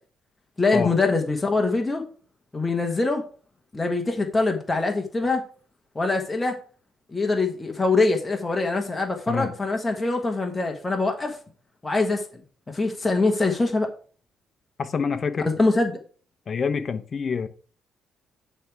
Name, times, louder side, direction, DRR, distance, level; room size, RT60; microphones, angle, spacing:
voice 1, 0.6-2.0 2.5-3.2 3.7-5.4 5.9-6.6 7.1-11.4 11.8-12.2 12.7-13.9 15.4-15.9, left 3 dB, 20° left, 1.3 m, -23 dB
voice 2, 14.8-15.5 16.5-17.5, left 5 dB, 45° left, 0.8 m, -26 dB
9.1 x 3.4 x 4.7 m
cardioid pair, 90°, 0 cm